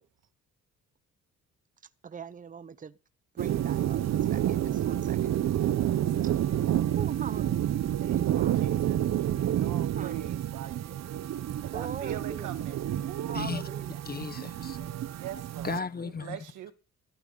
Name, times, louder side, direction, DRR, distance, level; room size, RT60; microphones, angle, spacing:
voice 1, 2.0-3.0 3.3-5.2 6.2-6.7 6.9-8.7 9.9-10.2 11.7-12.7 13.2-14.0 15.8-15.9, right 6 dB, 25° right, 0.8 m, -42 dB
sound 1, 3.4-15.8, right 11 dB, 60° right, 0.8 m, -29 dB
voice 2, 5.5-6.5 8.0-11.1 11.6-13.4 15.1-16.7, right 11 dB, 80° right, 1.6 m, -43 dB
voice 3, 14.0-15.1 15.6-16.4, left 5 dB, 30° left, 1.0 m, -36 dB
16.0 x 12.0 x 3.9 m
cardioid pair, 90°, 30 cm